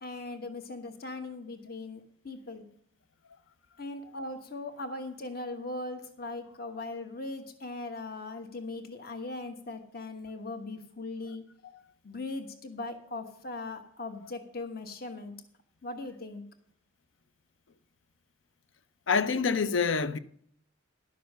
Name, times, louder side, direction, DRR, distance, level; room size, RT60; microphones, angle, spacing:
voice 1, 0.0-2.6 3.8-11.4 12.0-15.4 15.8-16.5, left 2 dB, 50° left, 1.3 m, -39 dB
voice 2, 19.1-20.2, left 5 dB, 70° left, 0.6 m, -26 dB
11.5 x 6.8 x 6.5 m
head